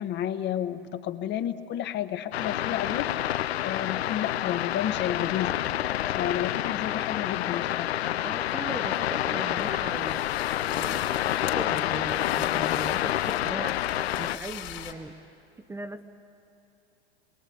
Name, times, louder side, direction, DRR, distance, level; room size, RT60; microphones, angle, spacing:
voice 1, 0.0-5.6 6.1-7.9, left 10 dB, 35° left, 10 dB, 1.1 m, -31 dB
sound 1, 2.3-14.4, left 12 dB, 80° left, 0.6 m, -28 dB
voice 2, 8.2-10.3 10.7-13.8 14.2-15.2 15.6-16.0, right 2 dB, 10° right, 8 dB, 0.7 m, -39 dB
sound 2, 9.6-14.9, left 12 dB, 55° left, 3.0 m, -41 dB
28.0 x 22.5 x 8.5 m, 2.8 s
hypercardioid pair, 105°, 31 cm